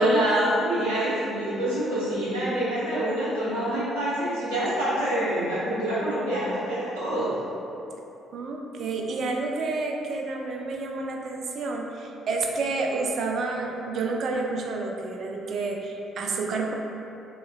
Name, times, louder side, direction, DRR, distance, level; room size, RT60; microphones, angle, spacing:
voice 1, 0.0-7.4, right 1 dB, 75° right, -10 dB, 1.1 m, -26 dB
voice 2, 8.3-16.7, right 3 dB, 55° right, 1 dB, 0.4 m, -29 dB
4.9 x 3.0 x 2.3 m, 3.0 s
figure-of-eight pair, 45°, 0 cm